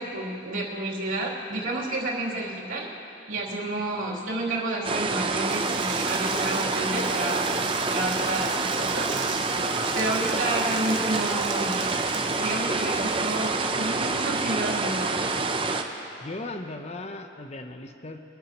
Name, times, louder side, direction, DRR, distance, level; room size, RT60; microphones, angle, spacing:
voice 1, 0.0-2.9 3.3-7.5 7.9-9.2 9.9-11.9 12.4-15.4, right 2 dB, 85° right, -5 dB, 3.0 m, -30 dB
sound 1, 4.8-15.8, right 3 dB, 25° right, 0.6 m, -27 dB
sound 2, 5.4-14.3, right 7 dB, 65° right, 1.0 m, -41 dB
voice 2, 16.2-18.2, left 2 dB, 30° left, 7 dB, 0.7 m, -37 dB
24.0 x 13.0 x 3.0 m, 2.9 s
head